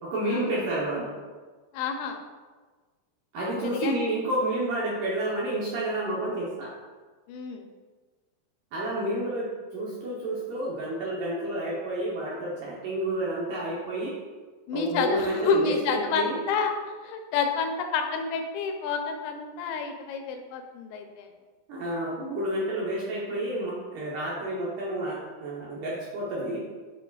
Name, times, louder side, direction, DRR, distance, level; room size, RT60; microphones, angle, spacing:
voice 1, 0.0-1.1 3.3-6.7 8.7-14.1 14.7-16.4 21.7-26.6, right 1 dB, 75° right, -6 dB, 2.0 m, -30 dB
voice 2, 1.7-2.2 3.5-3.9 7.3-7.7 14.7-16.7 17.0-21.3 23.3-23.6, left 5 dB, 85° left, 4 dB, 2.9 m, -29 dB
9.2 x 5.0 x 2.4 m, 1.4 s
omnidirectional pair, 4.9 m